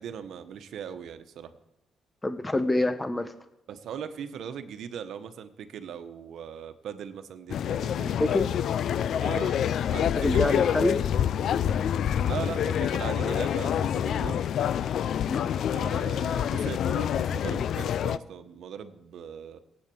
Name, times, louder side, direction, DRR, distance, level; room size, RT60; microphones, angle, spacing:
voice 1, 0.0-1.5 3.7-8.3 9.2-9.6 9.9-10.9 12.2-14.4 15.7-19.6, right 8 dB, 70° right, 9 dB, 1.2 m, -39 dB
voice 2, 2.2-3.3 8.2-8.5 10.2-11.0 15.3-15.5, left 2 dB, 15° left, 10 dB, 0.9 m, -26 dB
sound 1, 7.5-18.2, left 9 dB, 70° left, 0.4 m, -27 dB
18.0 x 8.3 x 8.6 m, 0.88 s
cardioid pair, 90°, 0 cm